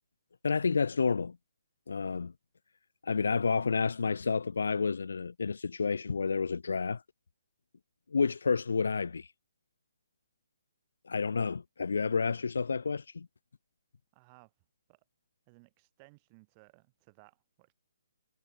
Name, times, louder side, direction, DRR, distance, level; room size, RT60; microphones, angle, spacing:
voice 1, 0.4-1.4 1.9-2.3 3.0-7.0 8.1-9.3 11.0-13.3, left 5 dB, 80° left, 2.5 m, -30 dB
voice 2, 14.1-14.5 14.9-15.0 15.5-17.7, right 30 dB, 20° right, 6.9 m, -60 dB
hypercardioid pair, 170°, 0 cm